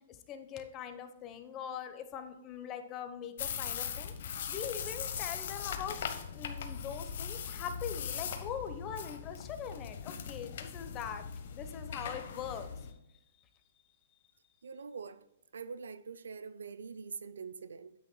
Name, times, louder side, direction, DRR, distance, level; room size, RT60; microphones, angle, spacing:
voice 1, 0.1-4.1 4.5-12.7, left 8 dB, 30° left, 1.0 m, -42 dB
sound 1, 3.4-12.9, left 7 dB, 60° left, 1.0 m, -40 dB
voice 2, 14.6-15.2 15.5-17.9, right 5 dB, 85° right, 0.5 m, -44 dB
9.3 x 8.6 x 2.3 m
hypercardioid pair, 130°, 0 cm